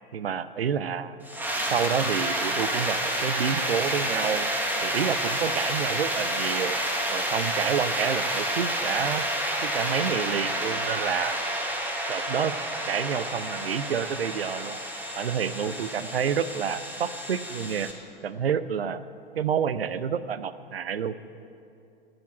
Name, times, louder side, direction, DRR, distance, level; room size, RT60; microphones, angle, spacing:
voice 1, 0.1-1.2 1.7-4.5 4.8-6.8 7.1-9.3 9.6-11.4 12.1-12.5 12.9-14.8 15.2-17.9 18.2-19.0 19.4-21.2, right 7 dB, 75° right, 14 dB, 0.6 m, -29 dB
sound 1, 1.2-17.9, right 1 dB, 5° right, 1.3 m, -29 dB
10.0 x 7.8 x 9.1 m, 2.6 s
figure-of-eight pair, 95°, 30 cm